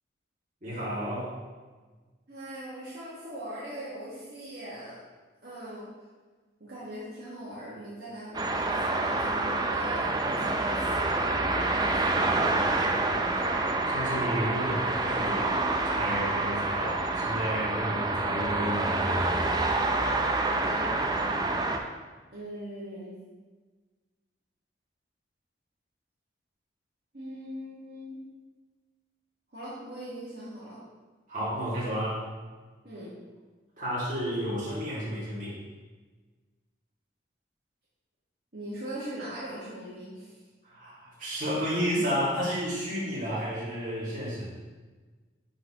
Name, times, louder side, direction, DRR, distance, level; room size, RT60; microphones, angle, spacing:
voice 1, 0.6-1.4 13.3-19.3 31.3-32.2 33.8-35.6 40.6-44.5, equal, 40° right, -7 dB, 2.0 m, -32 dB
voice 2, 2.3-5.0 5.4-5.9 6.6-12.7 20.5-20.9 22.3-23.1 27.1-28.2 29.5-30.8 32.8-33.1 38.5-40.4, right 1 dB, 60° right, -9 dB, 1.5 m, -41 dB
sound 1, 8.3-21.8, right 2 dB, 20° right, 0.4 m, -27 dB
10.5 x 4.1 x 2.9 m, 1.3 s
head